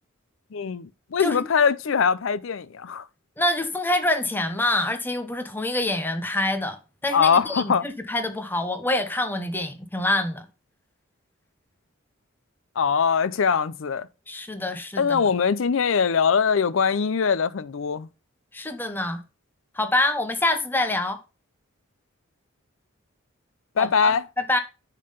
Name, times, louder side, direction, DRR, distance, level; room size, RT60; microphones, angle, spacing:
voice 1, 0.5-3.0 7.1-7.9 12.8-14.1 15.0-18.1 23.8-24.2, left 6 dB, 65° left, 0.5 m, -22 dB
voice 2, 3.4-10.5 14.3-15.3 18.5-19.2 19.7-21.2 23.8-24.6, left 1 dB, 10° left, 0.8 m, -26 dB
9.6 x 3.8 x 5.3 m
head